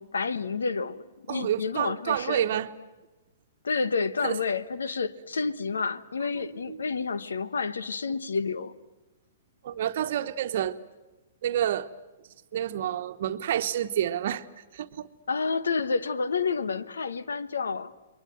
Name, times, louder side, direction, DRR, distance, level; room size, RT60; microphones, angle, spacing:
voice 1, 0.0-2.4 3.6-8.7 15.3-17.9, left 4 dB, 80° left, 1.1 m, -29 dB
voice 2, 1.3-2.7 4.2-4.4 6.7-6.8 9.6-10.8 11.4-11.9 12.5-14.4 14.7-15.1, right 10 dB, 60° right, 1.1 m, -28 dB
28.5 x 22.0 x 7.6 m
hypercardioid pair, 120°, 0 cm